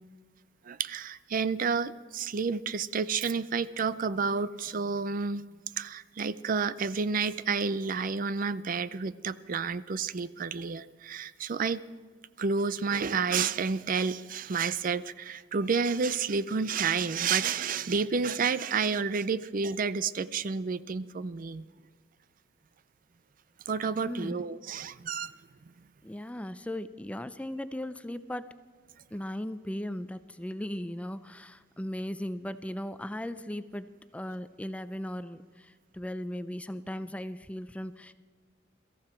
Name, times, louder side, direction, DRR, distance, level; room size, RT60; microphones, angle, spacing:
voice 1, 0.6-5.4 5.8-11.8 12.4-21.7 23.7-25.3, right 5 dB, 45° right, 16 dB, 0.5 m, -30 dB
voice 2, 24.0-24.4 26.0-28.5 29.1-33.9 34.1-38.1, left 1 dB, 5° left, 12 dB, 0.4 m, -37 dB
23.0 x 14.5 x 4.4 m, 1.5 s
head